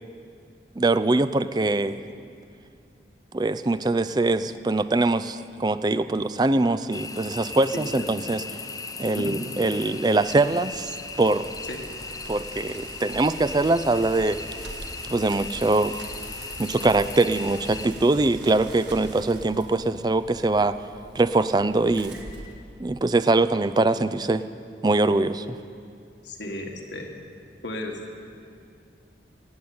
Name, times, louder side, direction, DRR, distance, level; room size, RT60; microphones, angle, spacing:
voice 1, 0.8-2.0 3.3-8.4 9.0-11.5 12.3-14.4 15.1-16.0 16.6-20.8 21.1-22.2 22.8-24.4 24.8-25.6, right 2 dB, 25° right, 13 dB, 0.4 m, -23 dB
sound 1, 6.9-17.9, left 4 dB, 20° left, 0.7 m, -38 dB
voice 2, 7.7-8.1 9.2-9.4 11.7-11.9 26.2-27.1 27.6-28.0, left 1 dB, 80° left, 2 dB, 1.8 m, -34 dB
Bicycle, 10.2-23.2, right 1 dB, 85° right, 1.6 m, -43 dB
18.0 x 8.1 x 8.6 m, 2.4 s
head